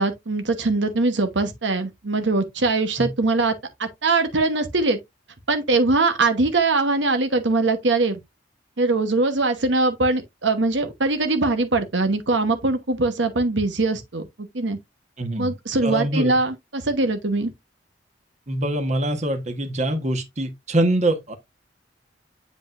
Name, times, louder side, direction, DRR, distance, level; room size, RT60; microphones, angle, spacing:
voice 1, 0.0-3.5 3.8-5.0 5.5-8.2 8.8-14.3 14.5-14.8 15.4-17.5, right 3 dB, 80° right, 1.1 m, -22 dB
voice 2, 15.2-15.5 15.8-16.4 18.5-21.3, right 1 dB, 40° right, 1.2 m, -24 dB
7.8 x 5.1 x 2.5 m
head